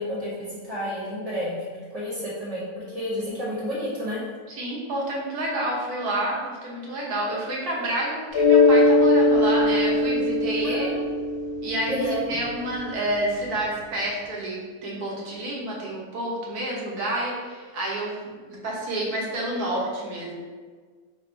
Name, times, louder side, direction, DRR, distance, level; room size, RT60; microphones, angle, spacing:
voice 1, 0.0-1.6 1.9-4.2 10.6-11.0 11.9-12.2, equal, 25° right, -7 dB, 1.0 m, -30 dB
voice 2, 4.5-10.9 11.6-18.2 18.6-20.3, right 1 dB, 70° right, -3 dB, 1.4 m, -29 dB
Mallet percussion, 8.3-12.8, left 2 dB, 50° left, 1.1 m, -20 dB
3.3 x 2.4 x 4.4 m, 1.5 s
omnidirectional pair, 1.7 m